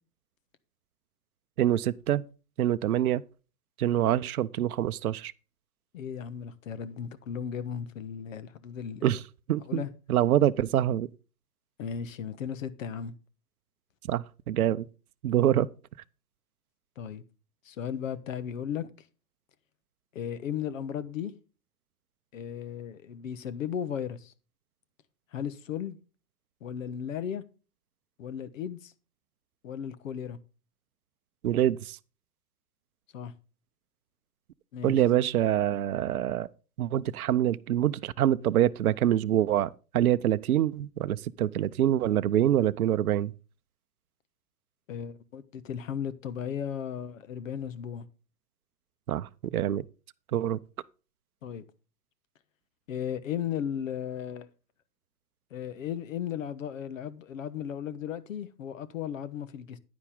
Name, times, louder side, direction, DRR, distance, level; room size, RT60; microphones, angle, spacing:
voice 1, 1.6-2.2 2.6-3.2 3.8-5.3 9.0-9.2 9.5-9.8 10.1-11.1 14.1-14.9 15.2-15.7 31.4-32.0 34.8-36.5 36.8-43.3 49.1-49.8 50.3-50.6, right 12 dB, 60° right, 0.7 m, -25 dB
voice 2, 5.9-9.1 9.6-9.9 11.8-13.1 17.0-17.2 17.6-19.1 20.1-21.3 22.3-24.3 25.3-26.0 26.6-27.4 28.2-28.9 29.6-30.4 33.1-33.3 34.7-35.0 44.9-48.1 51.4-51.6 52.9-54.5 55.5-59.8, left 8 dB, 50° left, 1.2 m, -35 dB
9.9 x 9.7 x 3.6 m
figure-of-eight pair, 120°, 49 cm